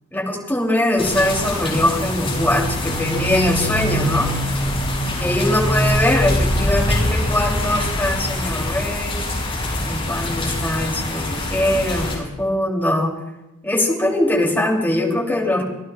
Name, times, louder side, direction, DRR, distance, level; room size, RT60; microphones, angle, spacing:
voice 1, 0.1-4.3 5.2-9.3 9.8-13.1 13.6-15.6, left 1 dB, 10° left, -2 dB, 3.0 m, -21 dB
sound 1, 1.0-12.2, left 1 dB, 25° left, 6.5 m, -23 dB
27.0 x 16.5 x 2.4 m, 0.98 s
head